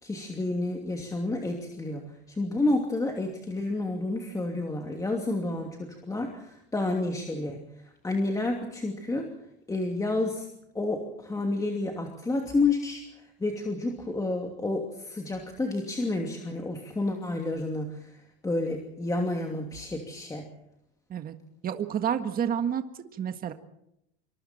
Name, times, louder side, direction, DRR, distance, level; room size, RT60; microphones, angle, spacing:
voice 1, 0.0-7.6 8.0-9.3 9.7-10.5 10.7-13.0 13.4-18.1 18.4-20.5, left 2 dB, 10° left, 2 dB, 2.7 m, -30 dB
voice 2, 21.6-23.5, right 8 dB, 30° right, 7 dB, 1.7 m, -30 dB
26.5 x 25.0 x 4.4 m, 0.80 s
supercardioid pair, 135°, 30 cm